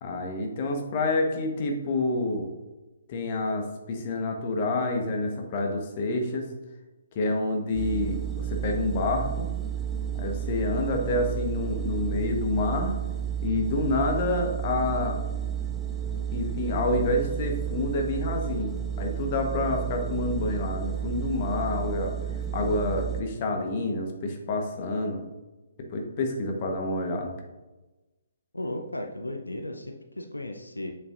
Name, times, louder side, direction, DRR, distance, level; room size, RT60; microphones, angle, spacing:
voice 1, 0.0-2.5 3.1-6.5 7.1-9.5 10.2-12.9 13.4-15.2 16.3-18.7 19.0-25.2 25.8-27.3, left 2 dB, 35° left, 3 dB, 1.1 m, -28 dB
sound 1, 7.7-23.2, right 9 dB, 15° right, 0.5 m, -31 dB
voice 2, 28.5-30.9, left 1 dB, 80° left, 3 dB, 0.7 m, -35 dB
7.9 x 6.8 x 2.5 m, 1.1 s
figure-of-eight pair, 135°, 0 cm